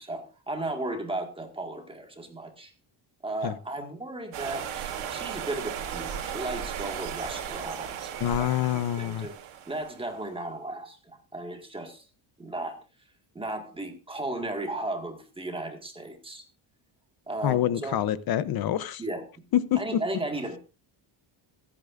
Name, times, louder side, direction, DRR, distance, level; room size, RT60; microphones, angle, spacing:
voice 1, 0.0-2.7 3.2-9.3 9.6-12.0 12.4-12.8 13.3-16.4 17.3-18.0 19.0-19.2 19.7-20.6, right 2 dB, 10° right, 1.8 m, -35 dB
sound 1, 4.3-10.1, right 9 dB, 75° right, 2.7 m, -36 dB
voice 2, 8.2-9.3 17.4-19.0 19.5-19.8, left 12 dB, 50° left, 0.8 m, -26 dB
25.5 x 8.7 x 2.5 m
cardioid pair, 170°, 48 cm